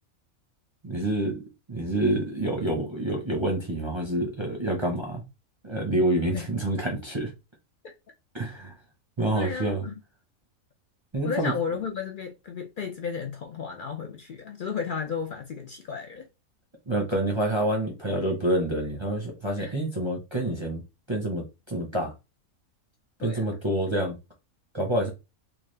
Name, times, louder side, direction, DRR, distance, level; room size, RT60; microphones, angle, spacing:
voice 1, 0.8-1.4 1.7-5.2 5.6-7.3 8.3-8.7 9.2-9.9 11.1-11.5 16.9-20.8 21.1-22.1 23.2-24.2 24.7-25.1, right 1 dB, 25° right, 0.6 m, -27 dB
voice 2, 9.3-10.0 11.2-16.3 19.6-19.8 23.2-23.6, left 6 dB, 70° left, 0.4 m, -33 dB
3.7 x 2.3 x 3.2 m
omnidirectional pair, 1.4 m